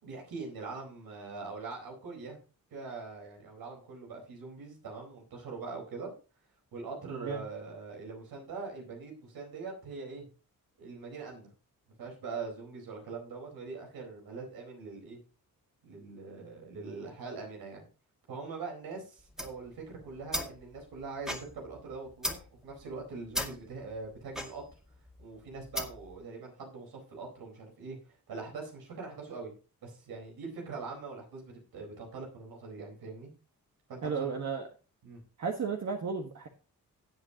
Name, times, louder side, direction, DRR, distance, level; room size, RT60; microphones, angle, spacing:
voice 1, 0.0-2.4 2.7-6.1 6.7-10.3 10.8-11.5 12.0-15.2 15.8-17.8 18.3-24.6 25.2-28.0 28.3-29.5 29.8-33.3 33.9-34.3 35.0-35.2, right 4 dB, 90° right, 0 dB, 4.4 m, -42 dB
voice 2, 7.0-7.4 34.0-34.7 35.4-36.5, right 5 dB, 50° right, 3 dB, 1.5 m, -34 dB
sound 1, 19.2-26.2, equal, ahead, 2.0 m, -39 dB
17.0 x 7.7 x 2.9 m, 0.34 s
cardioid pair, 100°, 35 cm